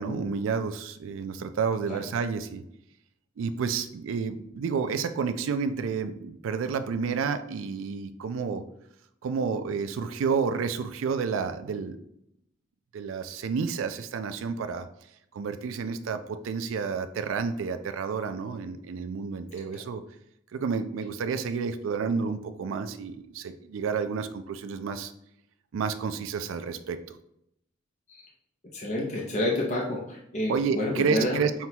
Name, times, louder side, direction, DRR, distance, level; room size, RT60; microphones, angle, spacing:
voice 1, 0.0-2.6 3.4-8.6 9.2-12.0 12.9-14.9 15.3-20.0 20.5-25.1 25.7-27.2 30.5-31.7, right 5 dB, 80° right, 9 dB, 0.3 m, -30 dB
voice 2, 28.7-31.4, left 1 dB, 35° left, -2 dB, 0.6 m, -29 dB
5.7 x 2.2 x 2.8 m, 0.76 s
head